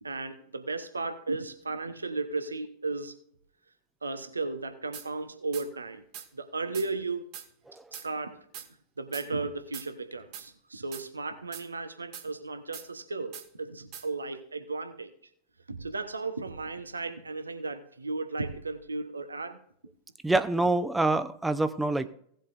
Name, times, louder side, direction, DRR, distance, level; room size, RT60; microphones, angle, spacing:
voice 1, 0.0-3.1 4.0-6.0 6.3-7.3 8.0-8.4 9.0-15.1 15.7-19.6, right 3 dB, 80° right, 9 dB, 0.9 m, -35 dB
sound 1, 4.9-5.1 5.5-5.7 6.1-6.3 6.7-6.9 7.3-7.5 7.9-8.1 8.5-8.7 9.1-9.3 9.7-9.9 10.3-10.5 10.9-11.1 11.5-11.7 12.1-12.3 12.7-12.9 13.3-13.5 13.9-14.1, right 9 dB, 45° right, 1.6 m, -42 dB
voice 2, 20.2-22.1, right 2 dB, 5° right, 11 dB, 0.7 m, -26 dB
17.5 x 7.8 x 2.5 m, 0.65 s
figure-of-eight pair, 90°, 0 cm